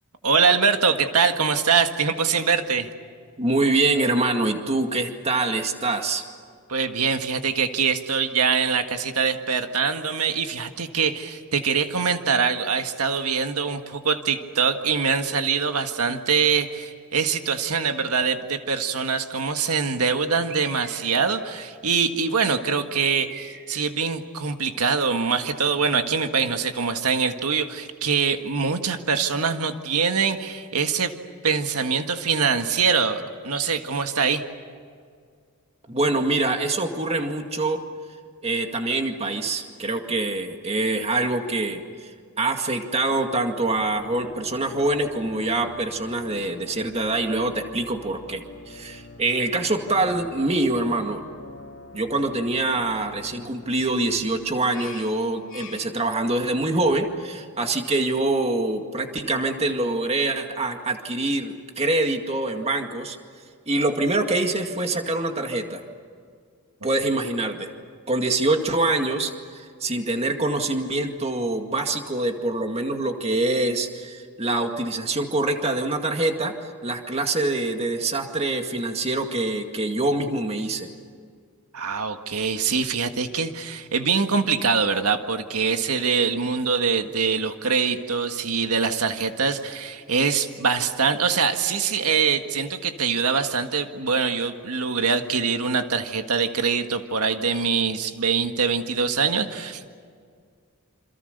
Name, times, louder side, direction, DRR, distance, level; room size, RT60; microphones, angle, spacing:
voice 1, 0.2-2.9 6.7-31.1 31.4-34.4 81.7-99.9, right 5 dB, 90° right, 6 dB, 1.7 m, -23 dB
voice 2, 3.4-6.2 35.9-37.8 38.4-42.1 42.4-51.3 51.9-63.2 63.7-65.8 66.8-67.7 68.1-76.5 76.8-80.9, right 2 dB, 30° right, 4 dB, 2.1 m, -25 dB
Bird, 20.5-21.3 23.0-23.9, right 6 dB, 55° right, 2.9 m, -39 dB
sound 1, 43.7-57.0, left 3 dB, 60° left, 2.5 m, -45 dB
28.0 x 27.0 x 6.7 m, 2.1 s
head